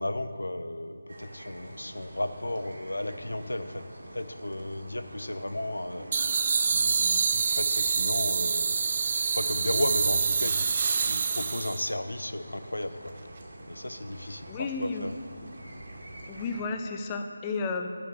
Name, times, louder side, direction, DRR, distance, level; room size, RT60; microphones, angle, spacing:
voice 1, 0.0-3.9 4.1-8.9 9.3-13.1 13.7-15.1, left 1 dB, 75° left, 10 dB, 0.8 m, -34 dB
sound 1, 1.1-16.6, right 1 dB, 50° right, 2.4 m, -46 dB
sound 2, 6.1-11.9, right 5 dB, 35° right, 0.5 m, -26 dB
voice 2, 14.5-15.1 16.3-18.0, left 4 dB, 15° left, 5 dB, 0.5 m, -32 dB
10.5 x 5.8 x 8.4 m, 2.2 s
figure-of-eight pair, 160°, 0 cm